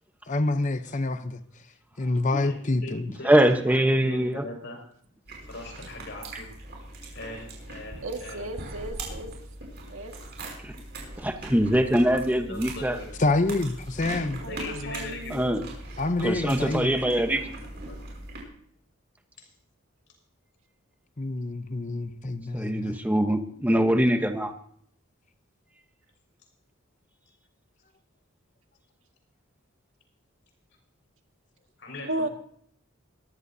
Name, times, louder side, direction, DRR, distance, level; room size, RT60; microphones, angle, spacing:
voice 1, 0.3-1.3 2.0-3.1 13.2-14.4 16.0-16.9 21.2-23.0, left 2 dB, 35° left, 0.7 m, -27 dB
voice 2, 2.4-3.3 3.7-4.8 5.0-6.5 7.1-8.5 12.3-13.1 14.4-15.7 17.2-18.3 19.4-19.5 31.8-32.1, left 2 dB, 60° left, 5.5 m, -41 dB
voice 3, 3.2-4.4 10.6-10.7 11.2-13.0 15.3-15.6 16.2-17.4 22.5-24.5, right 1 dB, 10° right, 1.0 m, -23 dB
sound 1, 5.3-18.4, right 2 dB, 55° right, 6.1 m, -40 dB
voice 4, 8.0-9.3 9.9-10.1 14.1-15.4 32.1-32.3, right 1 dB, 80° right, 1.9 m, -34 dB
22.0 x 15.0 x 2.8 m
head